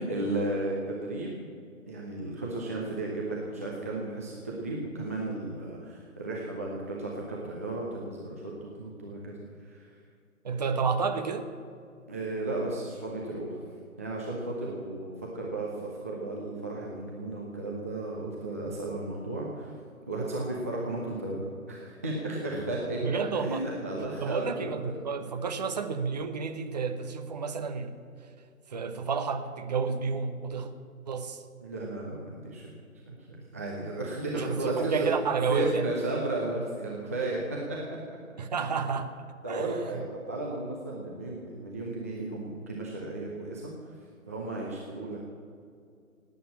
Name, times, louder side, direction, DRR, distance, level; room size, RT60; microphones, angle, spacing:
voice 1, 0.0-1.4 1.9-9.9 12.1-13.6 14.0-19.7 20.1-24.8 31.6-32.7 33.1-35.1 35.5-38.0 38.6-38.7 39.4-44.0 44.3-45.2, right 2 dB, 10° right, -4 dB, 0.6 m, -34 dB
voice 2, 10.4-11.5 23.0-23.7 24.2-28.0 28.7-30.7 31.1-31.4 34.3-35.8 38.4-39.1 39.5-40.0, right 5 dB, 30° right, 7 dB, 1.0 m, -30 dB
17.0 x 9.2 x 8.5 m, 2.4 s
figure-of-eight pair, 145°, 43 cm